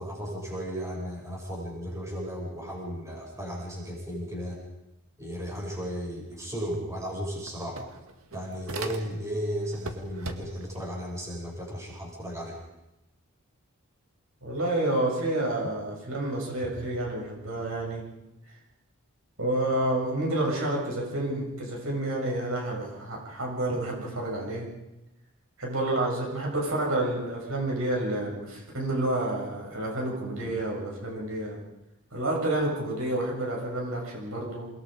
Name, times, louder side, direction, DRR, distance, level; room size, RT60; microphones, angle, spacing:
voice 1, 0.0-4.6 5.2-7.8 8.3-12.6, equal, 15° right, -2 dB, 7.3 m, -35 dB
sound 1, 6.7-6.8 7.1-9.4 9.7-10.8, right 3 dB, 85° right, 2.2 m, -40 dB
voice 2, 14.4-18.0 19.4-24.7 25.6-31.6 32.1-34.7, right 1 dB, 70° right, -1 dB, 7.4 m, -29 dB
29.0 x 21.5 x 5.2 m, 0.93 s
head